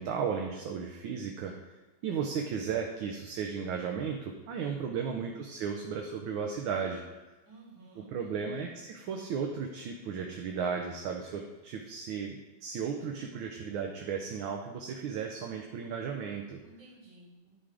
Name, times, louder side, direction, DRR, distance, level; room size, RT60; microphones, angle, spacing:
voice 1, 0.0-1.5 2.0-7.0 8.1-16.6, right 6 dB, 75° right, 1 dB, 1.5 m, -35 dB
voice 2, 4.9-5.3 7.5-8.7 16.6-17.5, right 2 dB, 55° right, -6 dB, 3.5 m, -54 dB
11.0 x 3.7 x 4.9 m, 1.1 s
omnidirectional pair, 2.3 m